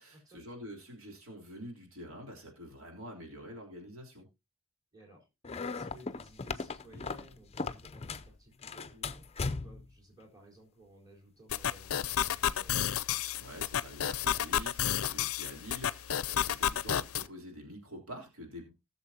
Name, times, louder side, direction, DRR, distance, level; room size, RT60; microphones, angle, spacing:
voice 1, 0.0-4.3 13.3-18.7, equal, 75° right, 0 dB, 3.5 m, -47 dB
voice 2, 4.9-5.3 5.6-9.3 9.6-12.8, right 1 dB, 20° right, -2 dB, 4.3 m, -57 dB
sound 1, 5.4-8.3 8.6-9.9, left 4 dB, 30° left, 0.5 m, -38 dB
sound 2, 11.5-17.3, left 9 dB, 80° left, 0.5 m, -31 dB
18.5 x 6.8 x 2.8 m, 0.24 s
head